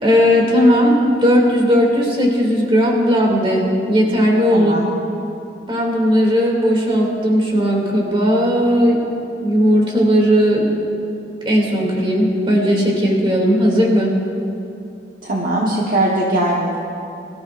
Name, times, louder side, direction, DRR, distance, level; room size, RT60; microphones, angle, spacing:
voice 1, 0.0-4.7 5.7-9.0 9.4-10.7 11.4-14.1, equal, 30° right, -1 dB, 2.5 m, -16 dB
voice 2, 4.5-4.9 15.2-16.8, right 1 dB, 55° right, -3 dB, 1.2 m, -20 dB
23.0 x 14.0 x 2.5 m, 2.7 s
head